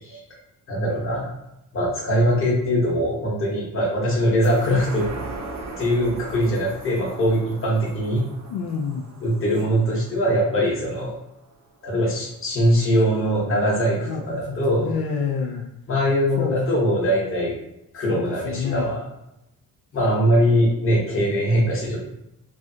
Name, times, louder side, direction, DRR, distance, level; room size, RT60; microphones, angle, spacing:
voice 1, 0.7-1.3 1.7-5.1 5.8-8.2 9.2-11.1 11.8-14.9 15.9-17.5 17.9-19.0 19.9-22.0, equal, 35° left, -4 dB, 1.0 m, -22 dB
sound 1, 4.4-11.2 11.6-11.7, right 3 dB, 50° right, 0.6 m, -39 dB
voice 2, 8.5-9.1 14.1-15.6 16.4-16.5 18.1-19.0, left 6 dB, 75° left, -1 dB, 0.5 m, -28 dB
3.2 x 2.4 x 2.7 m, 0.87 s
cardioid pair, 150°, 36 cm